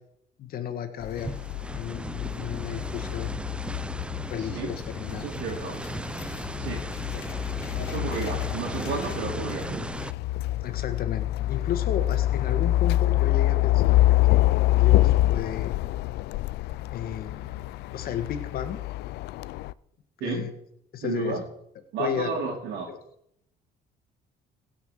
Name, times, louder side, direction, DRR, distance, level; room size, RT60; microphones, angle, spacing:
voice 1, 0.4-1.3 1.8-3.3 4.3-5.3 7.1-7.2 10.6-15.7 16.9-17.5 17.9-18.8 20.2-20.5 20.9-21.4 22.0-22.3 22.9-23.0, left 8 dB, 60° left, 9 dB, 1.7 m, -33 dB
sound 1, 1.0-19.7, left 16 dB, 80° left, 0.4 m, -26 dB
sound 2, 1.2-10.1, right 1 dB, 5° right, 0.4 m, -37 dB
voice 2, 4.4-4.7 5.1-5.8 6.6-6.9 7.8-9.9 20.2-20.5 21.0-21.4 21.9-22.9, right 5 dB, 80° right, -5 dB, 2.8 m, -32 dB
17.0 x 5.9 x 6.7 m, 0.73 s
cardioid pair, 110°, 17 cm